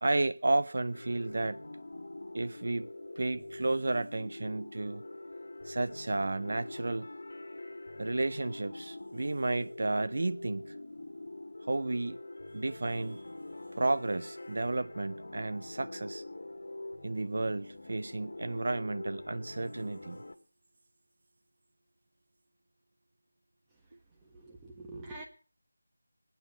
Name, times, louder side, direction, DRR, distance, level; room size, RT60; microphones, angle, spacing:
voice 1, 0.0-1.6 2.3-2.9 3.2-5.0 5.6-7.1 8.0-10.7 11.7-12.2 12.5-13.2 13.8-16.2 17.0-20.2, right 2 dB, 55° right, 0.6 m, -32 dB
sound 1, 0.9-20.3, left 2 dB, 65° left, 1.6 m, -44 dB
voice 2, 24.1-25.3, right 2 dB, 10° right, 1.4 m, -46 dB
20.5 x 9.2 x 5.6 m
figure-of-eight pair, 170°, 0 cm